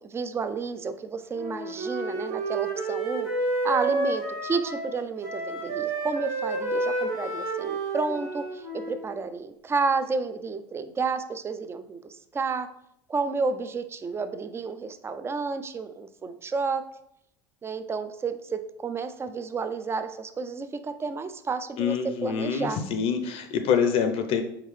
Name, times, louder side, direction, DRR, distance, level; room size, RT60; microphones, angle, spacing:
voice 1, 0.0-3.3 3.6-12.7 13.1-16.8 17.6-22.8, right 4 dB, 20° right, 10 dB, 0.4 m, -31 dB
Wind instrument woodwind instrument, 1.3-5.0 5.2-9.1, right 2 dB, 75° right, 1.3 m, -30 dB
voice 2, 21.8-24.4, left 7 dB, 55° left, 7 dB, 0.5 m, -26 dB
4.5 x 3.7 x 3.2 m, 0.75 s
supercardioid pair, 95°, 11 cm